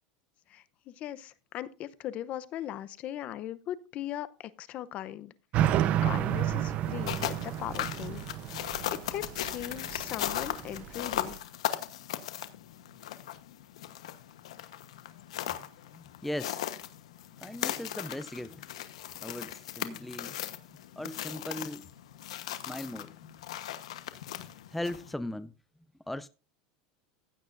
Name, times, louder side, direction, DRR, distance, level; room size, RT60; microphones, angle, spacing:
voice 1, 0.5-5.3 6.0-8.2 8.6-11.4, left 12 dB, 45° left, 0.7 m, -39 dB
sound 1, 5.5-11.4, right 11 dB, 45° right, 0.8 m, -31 dB
sound 2, 6.8-25.1, left 12 dB, 90° left, 1.1 m, -38 dB
voice 2, 15.9-16.6 17.4-18.7 19.2-20.3 21.0-21.9 22.7-23.1 24.7-25.5 26.1-26.3, left 1 dB, 5° left, 0.4 m, -38 dB
15.5 x 8.7 x 2.6 m
supercardioid pair, 125°, 3 cm